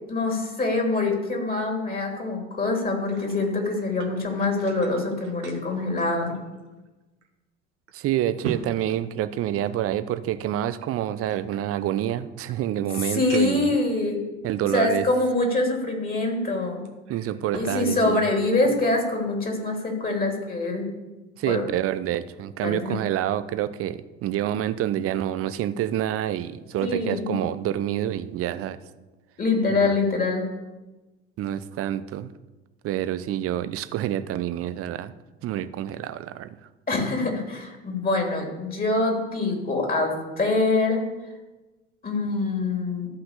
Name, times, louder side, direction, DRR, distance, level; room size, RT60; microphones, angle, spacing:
voice 1, 0.1-6.3 13.1-14.2 14.7-16.8 17.5-20.9 21.5-21.6 22.6-22.9 26.8-27.3 29.4-30.4 36.9-41.0 42.0-43.1, left 2 dB, 25° left, 1 dB, 3.2 m, -25 dB
sound 1, 2.9-6.9 7.2-7.3 7.9-9.9 10.8-12.2 12.7-12.8 13.3-13.7 14.5-14.6 16.9-17.8 18.1-19.0 19.4-19.6, right 6 dB, 70° right, 1.4 m, -41 dB
voice 2, 7.9-13.8 14.4-15.1 17.1-18.3 21.4-28.8 29.7-29.9 31.4-32.3 32.8-35.1 35.4-36.6, right 11 dB, 40° right, 13 dB, 0.7 m, -27 dB
13.5 x 5.7 x 6.8 m, 1.1 s
figure-of-eight pair, 60°, 35 cm